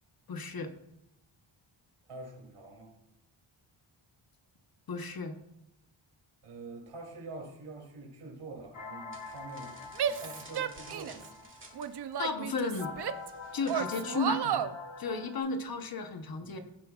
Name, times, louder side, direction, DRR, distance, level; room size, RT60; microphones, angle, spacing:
voice 1, 0.3-0.7 4.9-5.4 12.2-12.9 13.5-14.6 15.0-16.6, left 3 dB, 45° left, 7 dB, 0.8 m, -34 dB
voice 2, 2.1-3.0 6.4-11.3 16.4-16.6, right 2 dB, 85° right, -1 dB, 2.7 m, -46 dB
sound 1, 8.7-15.4, left 4 dB, 65° left, 1.5 m, -45 dB
sound 2, 9.1-14.2, right 2 dB, 25° right, 1.5 m, -54 dB
Female speech woman speaking / Yell, 10.0-11.3 11.8-13.3 13.7-14.7, right 8 dB, 55° right, 0.5 m, -33 dB
16.0 x 7.1 x 2.3 m, 0.89 s
wide cardioid pair, 175°, 50 cm